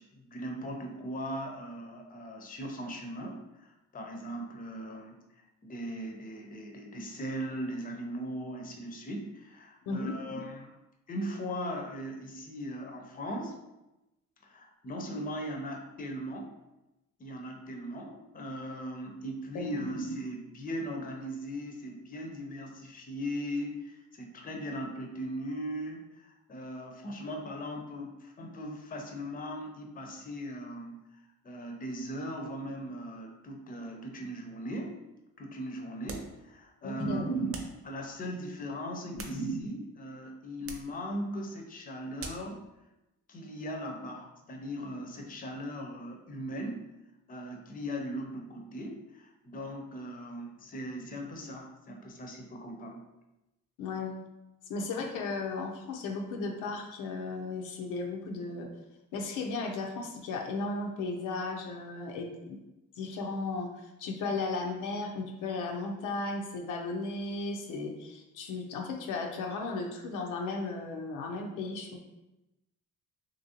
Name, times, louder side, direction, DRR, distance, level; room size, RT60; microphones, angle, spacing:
voice 1, 0.0-5.2 5.6-10.7 11.1-13.6 14.4-16.5 17.2-31.0 31.4-35.0 35.4-37.6 37.8-42.6 43.3-46.9 47.3-53.0, equal, 30° left, 2 dB, 0.5 m, -38 dB
voice 2, 9.9-10.2 19.5-19.7 36.8-37.2 39.1-39.2 53.8-54.2 54.7-58.7 59.1-62.6 63.0-72.0, left 3 dB, 85° left, 2 dB, 0.5 m, -35 dB
sound 1, 36.0-36.4 37.5-37.8 38.9-39.8 40.6-41.0 42.2-42.5, right 3 dB, 50° right, 0.5 m, -44 dB
2.9 x 2.5 x 2.8 m, 0.97 s
cardioid pair, 90°, 30 cm